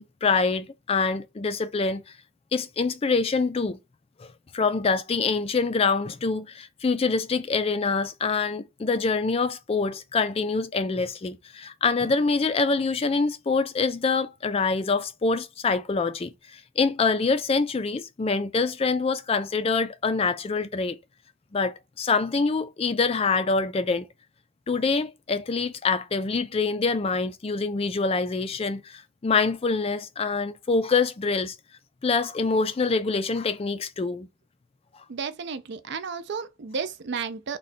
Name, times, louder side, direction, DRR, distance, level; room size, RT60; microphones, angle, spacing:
voice 1, 0.0-2.2 2.5-3.8 4.2-21.0 21.5-24.1 24.7-31.6 32.0-34.3, left 4 dB, 25° left, 0.3 m, -25 dB
voice 2, 35.1-37.6, right 5 dB, 50° right, 0.4 m, -32 dB
3.7 x 2.2 x 4.2 m
head